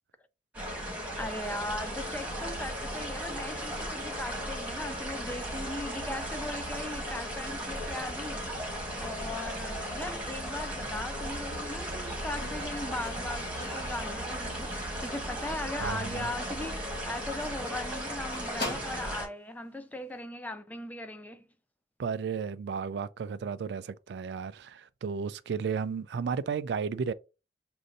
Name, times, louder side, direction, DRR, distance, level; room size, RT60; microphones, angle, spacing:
sound 1, 0.5-19.3, equal, 10° right, 1.3 m, -36 dB
voice 1, 1.2-8.6 9.0-21.5, left 1 dB, 10° left, 0.4 m, -39 dB
Squeak, 12.4-15.2 15.5-15.9 16.2-16.3 16.7-16.8 17.0-17.2 17.4-19.3 20.1-20.2, left 1 dB, 60° left, 2.0 m, -42 dB
voice 2, 15.8-16.3 22.0-27.1, right 6 dB, 70° right, 0.3 m, -33 dB
6.3 x 2.6 x 2.6 m
head